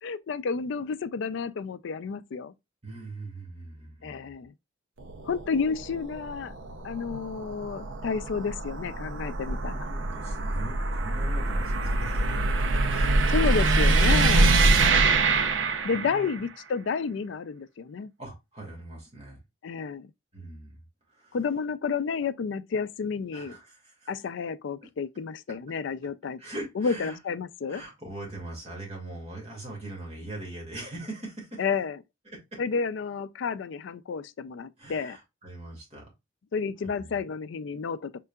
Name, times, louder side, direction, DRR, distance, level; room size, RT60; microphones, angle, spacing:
voice 1, 0.0-2.5 4.0-4.5 5.2-6.5 6.8-9.9 13.3-14.6 15.8-18.1 19.6-20.1 21.3-23.6 24.1-26.4 26.8-27.8 31.6-32.0 32.6-35.2 36.5-38.2, left 5 dB, 65° left, 0.4 m, -31 dB
voice 2, 2.8-4.3 9.6-12.4 12.9-13.1 15.9-16.5 18.2-19.4 20.3-20.8 21.1-21.4 23.3-24.1 26.4-27.2 27.7-31.6 32.3-32.6 34.8-36.1 37.0-37.2, right 2 dB, 30° right, 2.1 m, -41 dB
sound 1, 5.0-16.4, right 3 dB, 70° right, 0.6 m, -25 dB
4.4 x 3.7 x 2.3 m
head